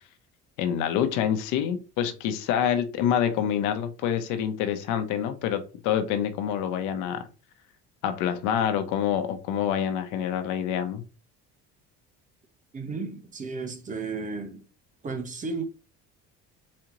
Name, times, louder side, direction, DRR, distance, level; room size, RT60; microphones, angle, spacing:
voice 1, 0.6-7.3 8.0-11.0, left 9 dB, 80° left, 0.8 m, -27 dB
voice 2, 12.7-14.6 15.0-15.6, right 4 dB, 25° right, 0.8 m, -33 dB
4.2 x 2.9 x 3.7 m
cardioid pair, 120°, 30 cm